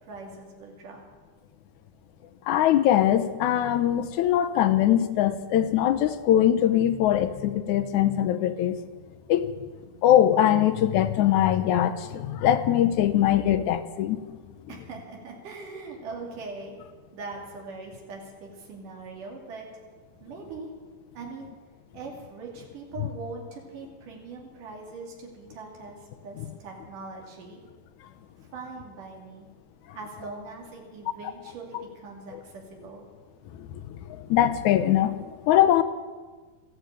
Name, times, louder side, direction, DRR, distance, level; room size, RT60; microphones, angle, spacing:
voice 1, 0.0-1.0 14.7-16.8 17.1-19.7 20.2-20.7 21.1-21.5 21.9-27.6 28.5-29.5 29.9-33.1, right 3 dB, 85° right, 0 dB, 4.2 m, -41 dB
voice 2, 2.5-8.8 9.3-9.6 10.0-14.2 23.0-23.1 33.5-33.8 34.1-35.8, left 11 dB, 80° left, 8 dB, 2.2 m, -22 dB
14.5 x 10.5 x 9.0 m, 1.4 s
omnidirectional pair, 3.6 m